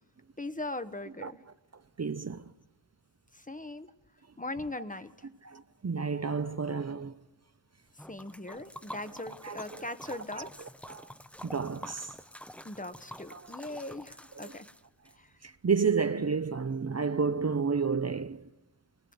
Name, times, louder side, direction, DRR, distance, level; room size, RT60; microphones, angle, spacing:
voice 1, 0.4-1.4 3.3-3.9 4.4-5.1 8.1-10.6 12.6-14.7 15.2-15.3, left 2 dB, 20° left, 1.0 m, -40 dB
voice 2, 2.0-2.5 5.4-7.1 9.4-10.5 10.9-11.1 11.4-12.1 13.3-13.5 14.4-14.5 15.4-18.5, right 5 dB, 35° right, 0.7 m, -31 dB
Liquid, 8.0-15.2, equal, 5° left, 0.8 m, -47 dB
22.5 x 19.5 x 7.9 m
wide cardioid pair, 85°, 42 cm